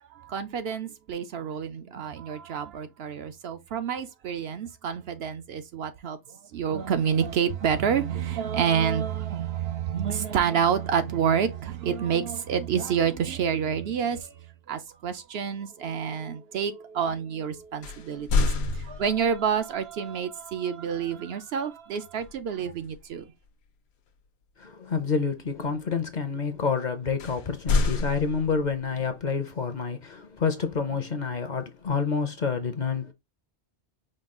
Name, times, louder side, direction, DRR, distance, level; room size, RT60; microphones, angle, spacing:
voice 1, 0.1-23.3, right 7 dB, 65° right, 0.8 m, -28 dB
sound 1, 17.8-19.5 22.2-22.5 22.9-23.2 27.2-28.9, left 3 dB, 70° left, 1.0 m, -27 dB
voice 2, 24.6-33.1, left 5 dB, 45° left, 0.7 m, -28 dB
5.2 x 2.3 x 3.6 m
omnidirectional pair, 1.2 m